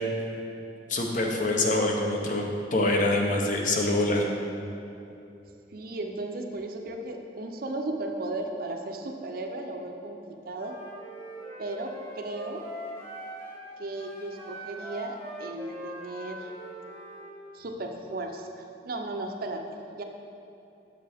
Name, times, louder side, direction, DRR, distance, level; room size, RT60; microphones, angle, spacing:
voice 1, 0.9-4.3, left 2 dB, 45° left, 1 dB, 0.7 m, -25 dB
voice 2, 5.7-10.8 11.6-12.6 13.8-16.5 17.5-19.6 20.0-20.1, right 2 dB, 50° right, 3 dB, 0.5 m, -35 dB
Wind instrument woodwind instrument, 10.5-13.6 13.9-17.3, equal, 15° left, 1.4 m, -42 dB
6.7 x 6.7 x 3.4 m, 2.8 s
head